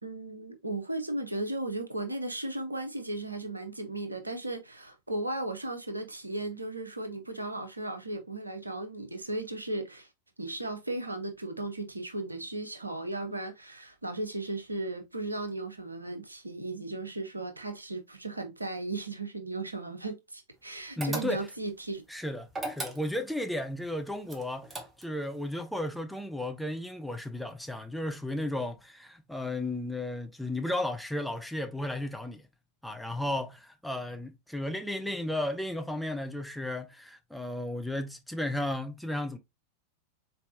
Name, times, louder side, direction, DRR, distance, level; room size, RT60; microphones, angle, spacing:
voice 1, 0.0-10.1 10.4-22.0, right 2 dB, 80° right, 0.7 m, -36 dB
voice 2, 21.0-21.5 22.1-32.4 32.8-39.4, left 1 dB, ahead, 0.6 m, -34 dB
sound 1, 21.0-21.7 22.5-23.4 24.3-25.3, right 2 dB, 15° right, 1.0 m, -37 dB
4.2 x 3.4 x 2.7 m
figure-of-eight pair, 90°, 0 cm